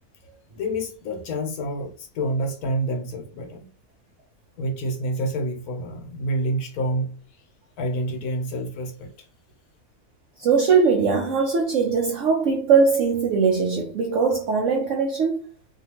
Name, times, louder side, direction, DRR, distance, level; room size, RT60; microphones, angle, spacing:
voice 1, 0.6-3.7 4.6-7.2 7.8-9.3, right 1 dB, 80° left, 1.2 m, -28 dB
voice 2, 10.4-15.4, right 5 dB, 65° right, 0.8 m, -20 dB
2.7 x 2.5 x 2.8 m
omnidirectional pair, 1.6 m